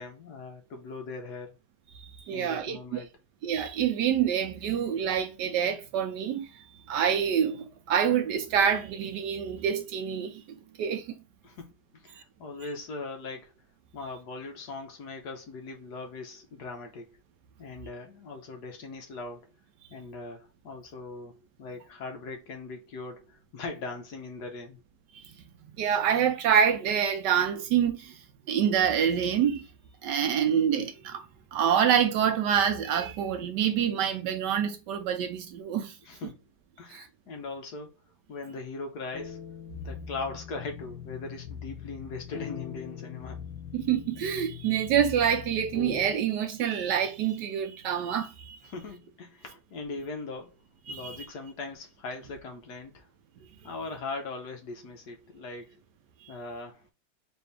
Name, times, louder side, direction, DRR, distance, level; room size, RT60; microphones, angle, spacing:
voice 1, 0.0-1.6 2.3-3.1 11.4-13.5 13.9-17.2 17.6-19.5 19.9-24.8 36.0-36.4 36.8-37.9 38.3-39.4 39.8-43.4 48.6-50.5 50.9-53.1 53.6-55.8 56.3-56.8, left 3 dB, 60° left, 1.3 m, -40 dB
voice 2, 2.3-3.0 3.4-6.5 6.9-11.0 25.8-28.1 28.5-29.7 30.0-31.2 31.5-35.9 36.9-37.0 43.7-48.6 50.9-51.2, right 8 dB, 70° right, 1.1 m, -26 dB
sound 1, 39.1-46.2, left 8 dB, 90° left, 1.5 m, -41 dB
4.1 x 2.7 x 3.3 m
omnidirectional pair, 2.1 m